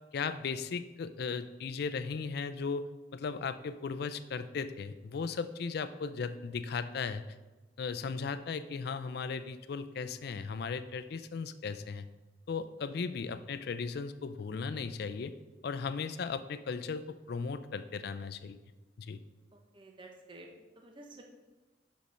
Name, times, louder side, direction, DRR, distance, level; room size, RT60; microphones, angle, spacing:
voice 1, 0.1-2.9 3.1-7.2 7.8-12.1 12.5-15.3 15.6-18.6 19.0-19.2, left 5 dB, 60° left, 12 dB, 0.4 m, -36 dB
voice 2, 19.5-21.2, right 2 dB, 25° right, 2 dB, 0.7 m, -52 dB
6.4 x 5.2 x 5.5 m, 1.2 s
head